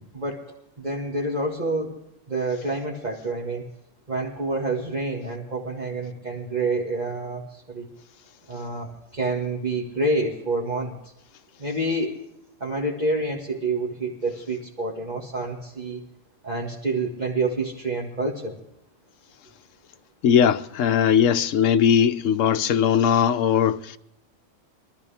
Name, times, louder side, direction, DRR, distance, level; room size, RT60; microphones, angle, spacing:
voice 1, 0.1-0.5 0.8-2.0 2.3-3.7 4.1-7.9 8.5-11.0 11.6-12.2 12.6-16.0 16.4-18.6, right 2 dB, 35° right, 2.1 m, -28 dB
voice 2, 20.2-24.0, left 8 dB, 75° left, 1.1 m, -19 dB
23.5 x 13.5 x 3.5 m
omnidirectional pair, 1.4 m